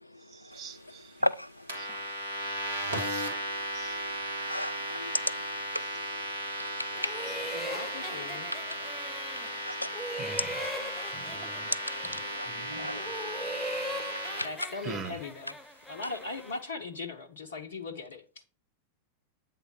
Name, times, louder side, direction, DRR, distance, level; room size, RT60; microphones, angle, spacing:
voice 1, 0.3-1.1 1.8-2.0 3.1-3.2 3.7-4.0 10.2-10.5 11.1-11.7 12.0-12.2 12.5-13.1 14.8-15.2, right 6 dB, 30° right, 0.8 m, -44 dB
voice 2, 1.2-1.7 3.3-7.7 9.6-9.9 10.5-10.9 11.7-14.5, left 1 dB, 85° left, 0.3 m, -37 dB
sound 1, 1.7-14.5, right 1 dB, 70° right, 1.6 m, -36 dB
sound 2, 7.0-9.6 9.9-12.5 12.9-16.7, equal, 5° left, 0.6 m, -40 dB
voice 3, 7.5-8.5 14.4-15.6 15.9-18.4, left 3 dB, 65° left, 0.8 m, -39 dB
8.2 x 3.7 x 5.6 m
figure-of-eight pair, 90°, 0 cm